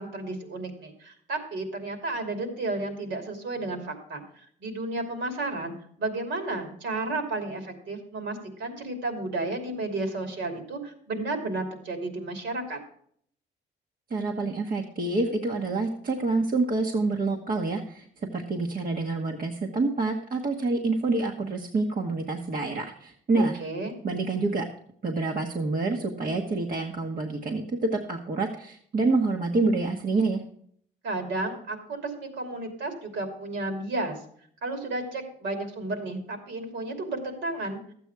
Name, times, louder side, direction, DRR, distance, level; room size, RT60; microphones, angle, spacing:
voice 1, 0.0-4.2 4.6-12.8 23.3-23.9 31.0-34.2 34.6-37.8, right 2 dB, 70° right, 5 dB, 2.8 m, -32 dB
voice 2, 14.1-18.0 18.3-23.6 24.0-24.7 25.0-30.4, right 3 dB, 45° right, 2 dB, 1.3 m, -27 dB
12.5 x 8.2 x 4.7 m, 0.62 s
cardioid pair, 90°, 20 cm